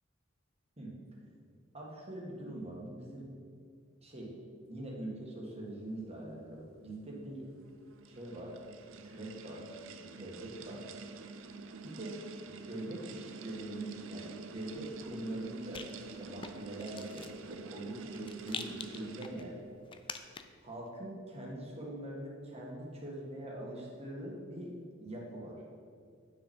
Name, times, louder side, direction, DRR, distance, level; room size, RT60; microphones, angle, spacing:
voice 1, 1.7-3.3 4.0-4.3 4.7-7.4 8.1-8.5 9.1-9.7 10.0-10.8 11.8-19.5 20.6-24.7 25.0-25.6, right 1 dB, 30° right, -3 dB, 1.8 m, -43 dB
sound 1, 7.5-19.7, right 4 dB, 75° right, 0.5 m, -48 dB
Rattle, 14.6-20.7, left 5 dB, 25° left, 0.4 m, -48 dB
9.6 x 6.2 x 4.4 m, 2.1 s
head